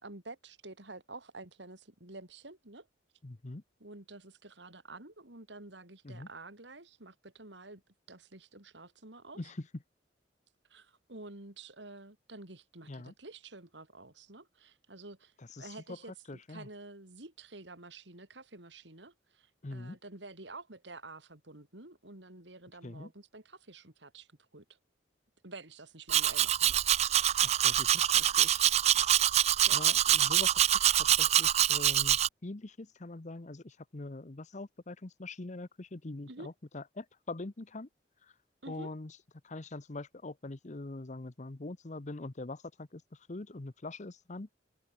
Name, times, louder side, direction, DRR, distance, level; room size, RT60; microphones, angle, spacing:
voice 1, 0.0-2.9 3.8-7.8 8.1-9.5 10.7-24.7 25.4-27.0 29.7-29.8 36.3-36.5 38.6-38.9, right 2 dB, 70° right, 3.7 m, -49 dB
voice 2, 3.2-3.6 6.0-6.3 9.4-9.7 12.9-13.1 15.5-16.0 16.3-16.7 19.6-20.0 22.8-23.1 27.4-28.6 29.7-37.9 38.2-38.3 38.7-39.2 39.4-43.0 43.3-44.5, left 2 dB, 40° left, 0.9 m, -43 dB
Domestic sounds home sounds, 26.1-32.3, right 11 dB, 35° right, 0.4 m, -25 dB
head